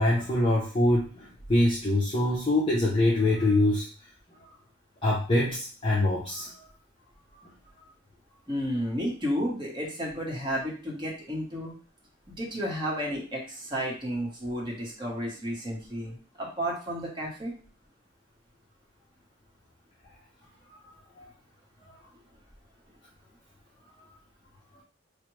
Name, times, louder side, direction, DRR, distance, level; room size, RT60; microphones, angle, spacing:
voice 1, 0.0-3.9 4.4-4.5 5.0-6.7 21.2-21.3, left 1 dB, 25° left, -5 dB, 0.6 m, -24 dB
voice 2, 8.5-11.7 12.3-17.5, equal, 25° right, -2 dB, 1.0 m, -32 dB
4.7 x 2.1 x 3.0 m, 0.38 s
head